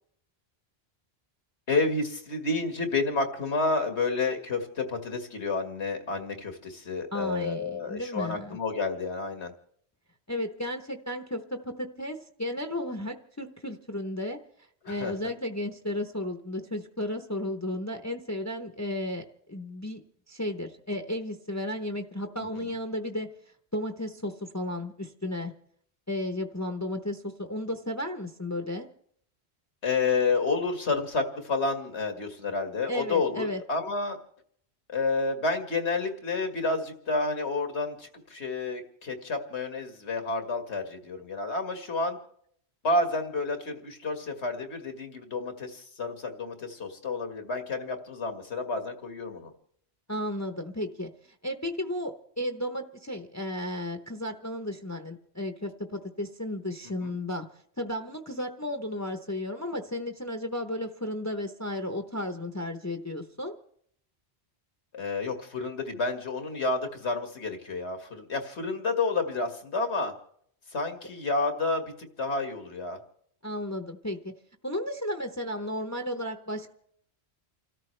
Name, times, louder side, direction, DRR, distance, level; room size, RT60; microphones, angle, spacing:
voice 1, 1.7-9.5 14.8-15.1 22.5-22.7 29.8-34.2 34.9-42.2 42.8-49.5 57.0-57.1 64.9-70.1 70.7-71.8 72.2-73.0, left 3 dB, 85° left, 5 dB, 2.1 m, -30 dB
voice 2, 7.1-8.6 10.3-14.4 14.9-20.0 20.3-23.3 23.7-25.5 26.1-28.9 32.9-33.6 50.1-57.5 57.8-63.5 73.4-74.3 74.6-76.7, left 1 dB, 15° left, 5 dB, 0.8 m, -34 dB
30.0 x 13.5 x 3.3 m, 0.65 s
omnidirectional pair, 1.1 m